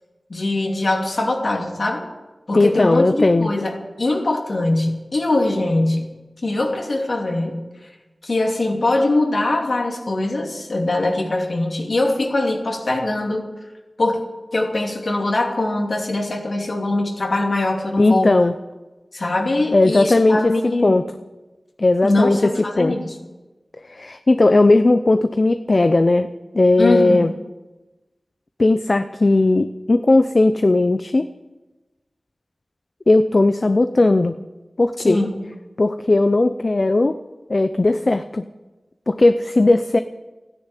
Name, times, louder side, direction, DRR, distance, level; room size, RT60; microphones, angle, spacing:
voice 1, 0.3-2.1 2.5-6.1 6.4-7.6 8.2-13.4 14.0-14.2 14.5-18.3 19.1-21.0 22.0-23.1 26.8-27.3 35.0-35.4, left 2 dB, 70° left, 1 dB, 2.7 m, -22 dB
voice 2, 2.5-3.5 18.0-18.5 19.7-20.5 20.8-21.1 21.8-23.0 23.9-26.3 26.5-27.3 28.6-31.3 33.1-34.3 34.8-35.2 35.8-37.2 37.5-38.4 39.1-40.0, left 2 dB, 55° left, 10 dB, 0.6 m, -17 dB
13.5 x 10.0 x 9.1 m, 1.1 s
cardioid pair, 45°, 0 cm